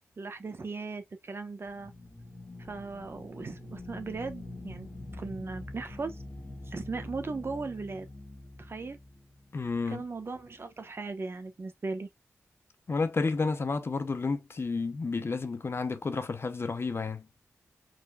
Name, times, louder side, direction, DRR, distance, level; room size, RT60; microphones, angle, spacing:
voice 1, 0.2-1.9 2.6-4.9 5.2-6.2 6.7-8.1 8.6-9.0 9.9-12.1, right 3 dB, 50° right, 1.2 m, -38 dB
sound 1, 1.6-10.3, left 2 dB, 35° left, 1.6 m, -45 dB
voice 2, 9.5-10.0 12.9-17.3, left 4 dB, 50° left, 0.8 m, -31 dB
4.6 x 4.4 x 2.4 m
wide cardioid pair, 80°, 5 cm